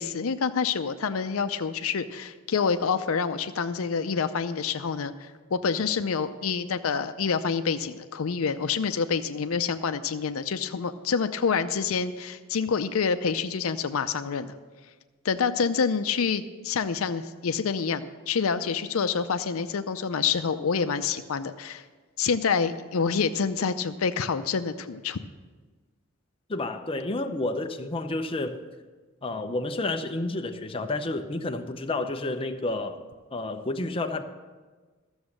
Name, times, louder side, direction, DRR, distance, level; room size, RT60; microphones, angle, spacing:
voice 1, 0.0-14.5 15.2-21.8 22.2-25.2, left 5 dB, 80° left, 10 dB, 0.5 m, -27 dB
voice 2, 26.5-28.6 29.2-33.0 33.3-34.2, left 2 dB, 25° left, 6 dB, 0.6 m, -30 dB
13.0 x 7.1 x 6.4 m, 1.4 s
head